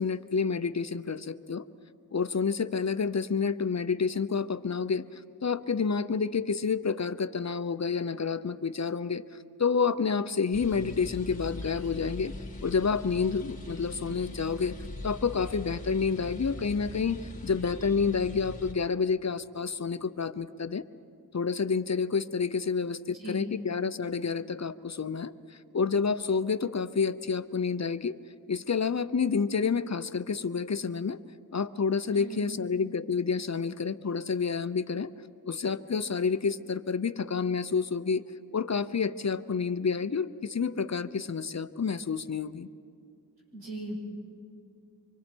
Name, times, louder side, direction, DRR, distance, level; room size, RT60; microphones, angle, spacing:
voice 1, 0.0-1.6 2.1-9.2 9.6-12.3 12.6-14.8 15.0-20.8 21.3-28.2 28.5-31.2 31.5-35.1 35.5-38.2 38.5-42.7, left 5 dB, 50° left, 14 dB, 0.7 m, -29 dB
sound 1, 10.5-18.7, left 2 dB, 20° left, 2.7 m, -41 dB
voice 2, 23.1-23.5 32.1-32.6 43.5-44.0, right 1 dB, 90° right, -5 dB, 6.3 m, -39 dB
25.5 x 24.5 x 4.5 m, 2.5 s
wide cardioid pair, 45°, 36 cm